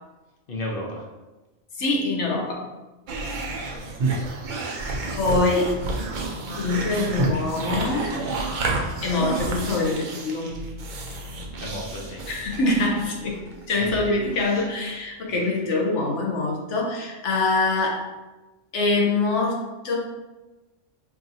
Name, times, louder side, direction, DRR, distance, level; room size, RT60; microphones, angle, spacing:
voice 1, 0.5-1.1 11.6-12.2 13.8-14.1 14.3-14.7 15.3-15.5, left 1 dB, 55° left, -2 dB, 0.8 m, -34 dB
voice 2, 1.8-2.7 5.2-5.8 6.6-8.1 9.0-10.5 12.3-13.4 13.7-18.1 18.7-20.0, left 2 dB, 80° left, -1 dB, 1.1 m, -24 dB
sound 1, 3.1-14.8, right 3 dB, 55° right, 0.6 m, -30 dB
4.6 x 2.7 x 2.6 m, 1.1 s
omnidirectional pair, 1.2 m